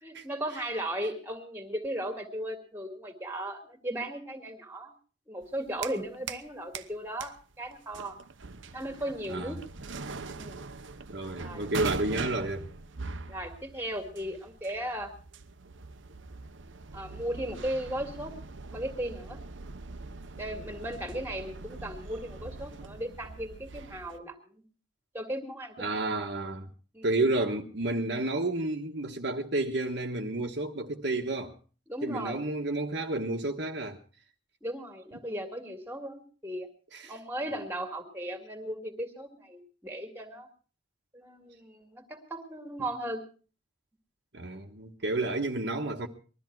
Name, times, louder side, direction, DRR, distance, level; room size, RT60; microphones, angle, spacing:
voice 1, 0.0-4.9 5.3-8.2 8.7-9.6 10.3-10.6 11.4-11.7 13.3-15.1 16.9-18.3 18.7-19.4 20.4-24.6 25.1-26.1 26.9-27.1 31.9-32.4 34.6-36.7 37.0-40.5 41.1-43.2 45.1-45.2, right 1 dB, 10° right, 2.2 m, -36 dB
sound 1, 5.4-6.5 6.7-24.2, right 4 dB, 80° right, 1.0 m, -42 dB
voice 2, 11.1-12.7 25.8-26.7 27.0-31.5 32.0-34.0 36.9-37.1 44.3-46.1, right 2 dB, 60° right, 1.3 m, -31 dB
21.0 x 13.0 x 4.6 m
head